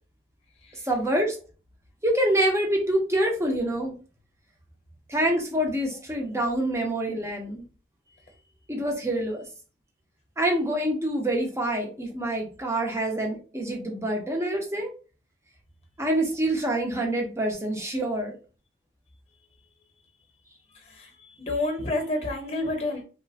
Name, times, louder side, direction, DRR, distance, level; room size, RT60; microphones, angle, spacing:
voice 1, 0.8-1.4 2.0-3.9 5.1-7.6 8.7-9.4 10.4-14.9 16.0-18.3, right 1 dB, 15° right, 2 dB, 0.6 m, -26 dB
voice 2, 21.4-23.0, left 2 dB, 35° left, 2 dB, 0.8 m, -29 dB
3.0 x 2.1 x 2.6 m, 0.36 s
head